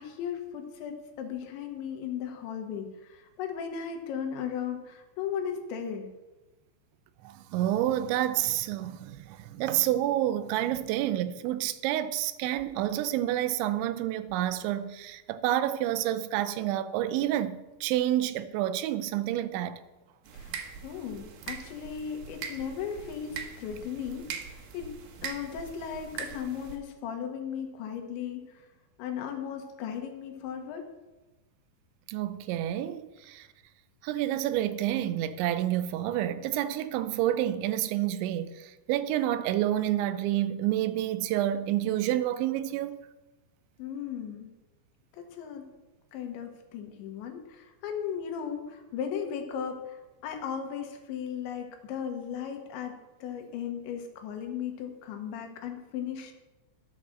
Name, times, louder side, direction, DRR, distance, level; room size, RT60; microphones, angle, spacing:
voice 1, 0.0-6.1 20.3-20.6 20.8-24.4 24.7-24.9 25.2-28.4 29.0-30.9 43.8-44.5 45.1-45.7 46.1-56.3, left 8 dB, 80° left, 3.4 m, -36 dB
voice 2, 7.2-19.8 32.1-33.5 34.0-43.0, right 12 dB, 90° right, 3.0 m, -29 dB
sound 1, 20.2-26.8, right 7 dB, 70° right, 2.6 m, -41 dB
11.5 x 6.3 x 6.4 m
omnidirectional pair, 5.2 m